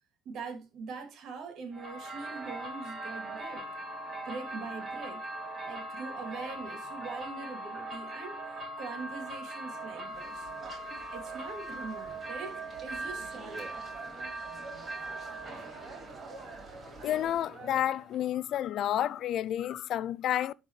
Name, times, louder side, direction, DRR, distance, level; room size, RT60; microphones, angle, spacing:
voice 1, 0.2-3.7 4.3-5.3 5.6-8.4 8.8-10.5 11.1-13.8, right 4 dB, 60° right, 2.7 m, -43 dB
sound 1, 1.7-18.1, right 2 dB, 40° right, 3.5 m, -40 dB
sound 2, 10.1-17.5, right 2 dB, 20° right, 3.5 m, -53 dB
voice 2, 17.0-20.5, left 11 dB, 60° left, 0.4 m, -30 dB
11.5 x 4.4 x 3.2 m
cardioid pair, 110°, 0 cm